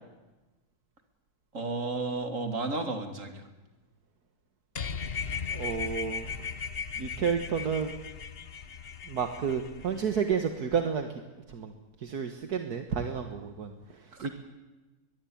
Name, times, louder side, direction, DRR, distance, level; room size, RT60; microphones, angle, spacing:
voice 1, 1.5-3.5 14.1-14.4, right 3 dB, 50° right, 6 dB, 3.0 m, -33 dB
sound 1, 4.8-10.4, left 6 dB, 40° left, 1.1 m, -37 dB
voice 2, 5.5-6.5 7.0-7.9 9.1-11.2 11.5-11.7 12.0-14.4, right 6 dB, 70° right, 6 dB, 2.0 m, -31 dB
23.0 x 21.5 x 8.7 m, 1.2 s
omnidirectional pair, 1.7 m